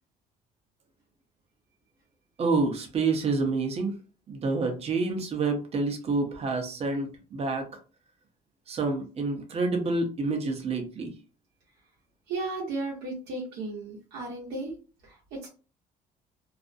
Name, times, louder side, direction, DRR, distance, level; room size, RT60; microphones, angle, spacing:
voice 1, 2.4-3.9 4.3-7.7 8.7-11.1, right 3 dB, 35° right, 3 dB, 0.7 m, -28 dB
voice 2, 12.3-14.7 15.0-15.5, right 2 dB, 80° right, -3 dB, 0.8 m, -35 dB
2.4 x 2.0 x 2.6 m, 0.34 s
cardioid pair, 110°, 17 cm